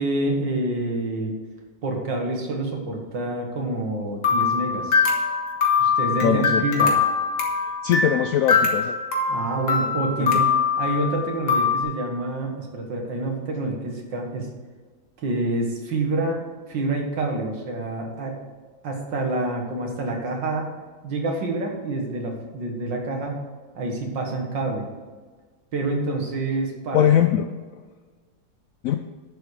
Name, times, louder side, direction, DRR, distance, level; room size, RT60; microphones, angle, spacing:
voice 1, 0.0-1.3 1.8-5.0 5.8-6.9 9.3-10.5 10.8-14.5 15.2-16.4 16.7-18.4 18.8-20.8 21.0-23.4 23.8-24.9 25.7-27.1, right 2 dB, 75° right, 1 dB, 2.3 m, -27 dB
sound 1, 4.2-11.8, left 5 dB, 60° left, 2.0 m, -22 dB
voice 2, 6.2-6.6 7.8-9.0 10.2-10.3 26.9-27.8 28.8-29.0, left 9 dB, 75° left, 8 dB, 0.7 m, -21 dB
10.0 x 7.2 x 4.9 m, 1.4 s
omnidirectional pair, 2.0 m